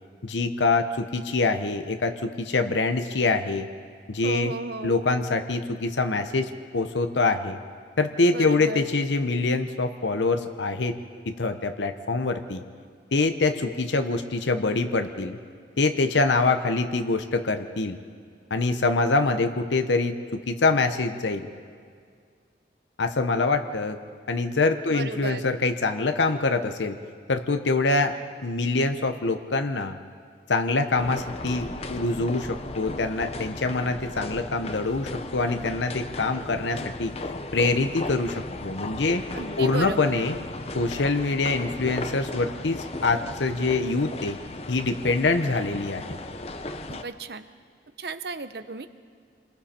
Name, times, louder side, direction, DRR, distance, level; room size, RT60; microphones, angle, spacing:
voice 1, 0.2-3.7 4.1-4.5 4.8-7.6 8.0-11.0 11.3-12.6 13.1-15.4 15.8-18.0 18.5-21.5 23.0-24.0 24.3-27.0 27.3-28.2 28.4-30.0 30.5-37.1 37.5-39.2 39.6-40.4 40.7-44.4 44.7-46.2, left 3 dB, 85° left, 7 dB, 0.9 m, -25 dB
voice 2, 4.2-5.0 8.3-8.9 24.9-25.5 39.3-40.3 46.9-47.5 48.0-48.9, right 3 dB, 60° right, 11 dB, 0.8 m, -34 dB
sound 1, 31.0-47.0, left 2 dB, 35° left, 0.8 m, -36 dB
28.0 x 21.5 x 4.4 m, 2.1 s
head